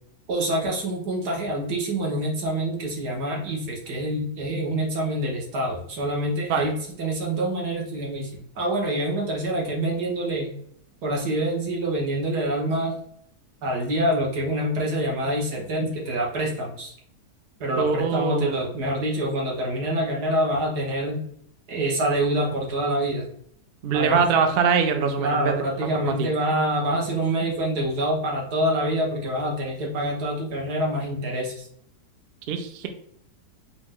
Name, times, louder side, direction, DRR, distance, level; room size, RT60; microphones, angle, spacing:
voice 1, 0.3-10.5 11.0-13.0 13.6-16.9 17.6-21.2 21.7-23.3 23.9-24.3 25.2-31.7, right 1 dB, 85° right, -1 dB, 1.7 m, -26 dB
voice 2, 17.8-18.6 23.8-25.6 26.2-26.3 32.5-32.9, right 6 dB, 70° right, 6 dB, 0.5 m, -23 dB
4.8 x 2.5 x 3.6 m, 0.67 s
omnidirectional pair, 1.7 m